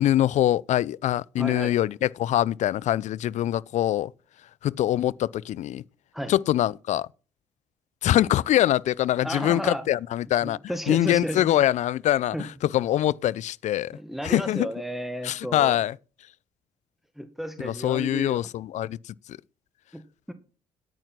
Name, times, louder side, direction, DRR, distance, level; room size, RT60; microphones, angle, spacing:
voice 1, 0.0-4.1 4.6-5.8 6.3-7.1 8.0-10.6 10.9-14.0 14.2-14.7 15.2-16.0 17.6-19.1, left 13 dB, 65° left, 0.5 m, -24 dB
voice 2, 1.3-1.7 6.1-6.3 9.2-9.8 10.4-11.4 12.3-12.5 13.9-15.8 17.2-18.4 19.9-20.0 20.3-20.4, equal, ahead, 1.7 m, -32 dB
9.6 x 9.1 x 6.1 m
supercardioid pair, 60°, 13 cm